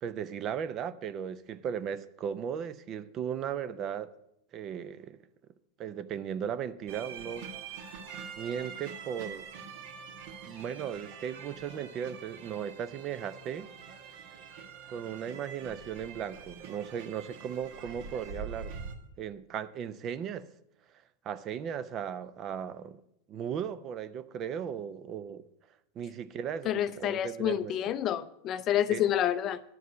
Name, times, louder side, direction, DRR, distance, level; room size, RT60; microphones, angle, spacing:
voice 1, 0.0-4.1 4.5-5.2 5.8-7.5 7.8-7.9 8.4-9.5 10.4-13.7 14.9-18.7 19.2-20.5 21.2-23.0 23.3-25.4 26.0-27.8 28.9-29.0, right 8 dB, 35° right, 0.5 m, -36 dB
sound 1, 6.9-19.0, right 6 dB, 60° right, 1.4 m, -45 dB
voice 2, 26.6-29.6, left 11 dB, 35° left, 0.4 m, -28 dB
11.0 x 4.7 x 8.2 m
supercardioid pair, 135°, 0 cm